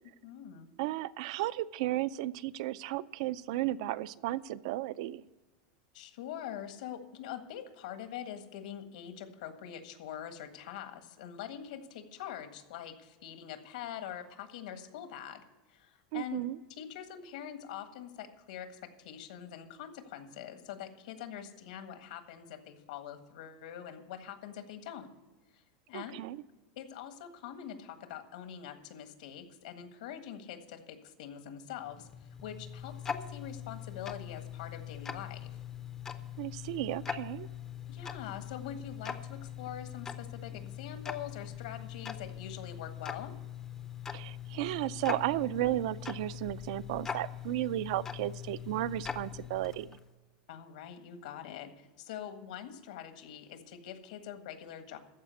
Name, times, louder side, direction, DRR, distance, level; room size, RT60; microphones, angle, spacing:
voice 1, 0.0-0.7 5.9-15.4 15.7-25.1 25.5-26.2 26.8-35.5 37.9-43.3 50.5-55.0, left 9 dB, 70° left, 7 dB, 1.6 m, -44 dB
voice 2, 0.8-5.3 16.1-16.6 25.9-26.4 36.4-37.5 44.1-50.0, right 15 dB, 50° right, 16 dB, 0.4 m, -34 dB
Tick-tock, 31.8-50.1, left 8 dB, 15° left, 0.5 m, -42 dB
14.0 x 5.0 x 8.2 m, 1.2 s
supercardioid pair, 175°, 4 cm